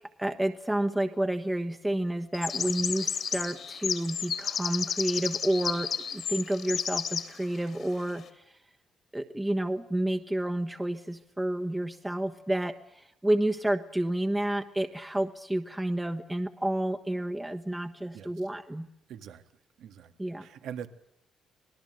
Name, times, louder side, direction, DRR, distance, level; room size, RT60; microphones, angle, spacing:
voice 1, 0.2-8.6 9.1-18.9 20.2-20.5, right 1 dB, 10° right, 5 dB, 1.3 m, -30 dB
sound 1, 2.3-7.3, left 7 dB, 60° left, 3.2 m, -32 dB
voice 2, 19.1-19.4 19.8-20.1 20.4-20.9, right 8 dB, 80° right, 9 dB, 1.8 m, -42 dB
25.5 x 18.5 x 7.8 m, 0.83 s
cardioid pair, 90°, 0 cm